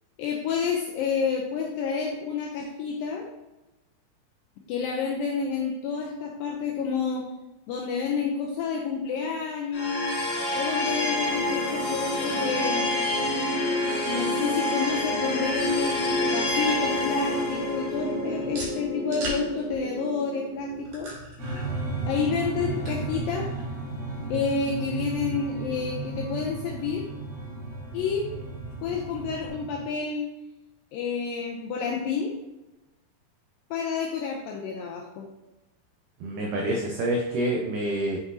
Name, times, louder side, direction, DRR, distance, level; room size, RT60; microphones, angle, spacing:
voice 1, 0.2-3.3 4.7-7.3 7.7-10.2 10.5-12.9 14.0-16.0 16.3-21.1 22.1-23.5 24.3-27.0 27.9-28.3 28.8-30.3 30.9-32.3 33.7-35.3, left 5 dB, 90° left, 0 dB, 2.0 m, -29 dB
sound 1, 9.7-20.8, left 1 dB, 75° left, 1.8 m, -28 dB
sound 2, 15.3-29.5, right 1 dB, 60° right, 3.8 m, -44 dB
sound 3, 21.4-29.8, right 3 dB, 35° right, 2.4 m, -34 dB
voice 2, 36.2-38.2, right 1 dB, 85° right, -1 dB, 1.8 m, -27 dB
7.3 x 6.1 x 2.7 m, 0.99 s
omnidirectional pair, 4.7 m